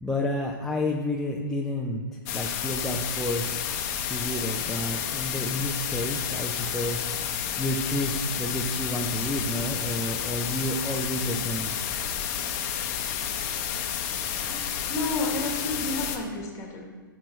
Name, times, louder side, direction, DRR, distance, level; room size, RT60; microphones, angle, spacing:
voice 1, 0.0-3.6 4.0-11.8, left 1 dB, 5° left, -3 dB, 0.5 m, -30 dB
sound 1, 2.3-16.2, left 8 dB, 40° left, 0.8 m, -31 dB
voice 2, 14.9-16.9, left 2 dB, 25° left, 2 dB, 1.5 m, -31 dB
8.5 x 6.2 x 3.2 m, 1.5 s
hypercardioid pair, 130°, 11 cm